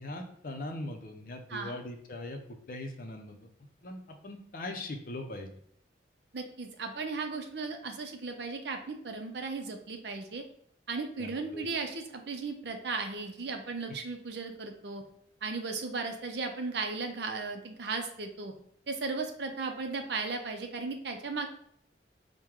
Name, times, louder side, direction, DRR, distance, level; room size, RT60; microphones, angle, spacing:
voice 1, 0.0-3.4 3.8-5.5 11.2-11.7, left 2 dB, 50° left, 4 dB, 0.6 m, -40 dB
voice 2, 6.3-10.4 10.9-15.0 15.4-18.5 18.9-21.5, right 4 dB, 65° right, 4 dB, 0.6 m, -36 dB
4.5 x 2.2 x 3.6 m, 0.67 s
head